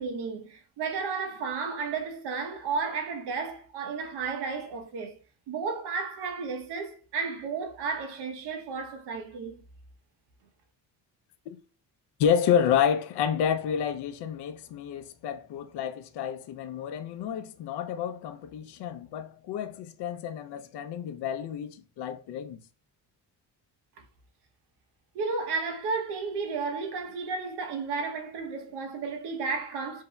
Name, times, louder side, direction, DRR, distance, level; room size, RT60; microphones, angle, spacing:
voice 1, 0.0-5.2 5.5-9.6 25.1-30.0, right 4 dB, 80° right, 1.0 m, -33 dB
voice 2, 12.2-22.6, left 8 dB, 80° left, 0.7 m, -29 dB
7.4 x 2.8 x 2.3 m
cardioid pair, 110°, 40 cm